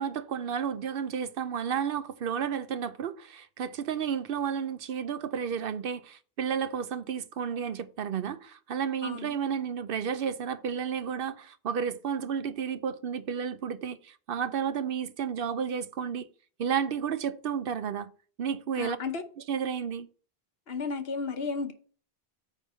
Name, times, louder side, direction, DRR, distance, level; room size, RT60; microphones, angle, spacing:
voice 1, 0.0-16.3 16.6-18.1 18.4-19.0 19.5-20.1, right 7 dB, 65° right, 0.8 m, -32 dB
voice 2, 9.0-9.3 18.8-19.2 20.7-21.7, left 4 dB, 70° left, 1.2 m, -33 dB
9.2 x 3.6 x 6.2 m
omnidirectional pair, 1.1 m